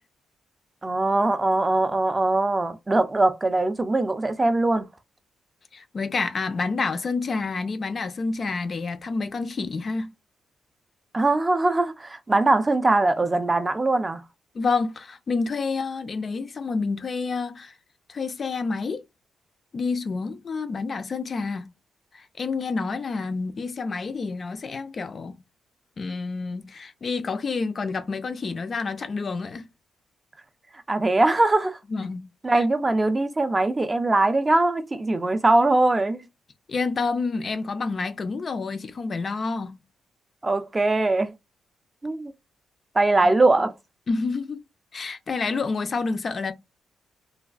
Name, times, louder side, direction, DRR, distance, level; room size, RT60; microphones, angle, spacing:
voice 1, 0.8-4.9 11.1-14.2 30.9-31.8 32.4-36.2 40.4-41.3 42.0-42.3 42.9-43.7, right 2 dB, 20° right, 0.4 m, -21 dB
voice 2, 5.7-10.1 14.5-17.7 18.1-19.0 19.7-21.7 22.1-25.4 26.0-29.6 31.9-32.3 32.5-32.6 36.7-39.8 43.2-43.3 44.1-44.6 44.9-46.5, left 4 dB, 40° left, 0.4 m, -28 dB
3.3 x 2.3 x 2.3 m
cardioid pair, 120°, 0 cm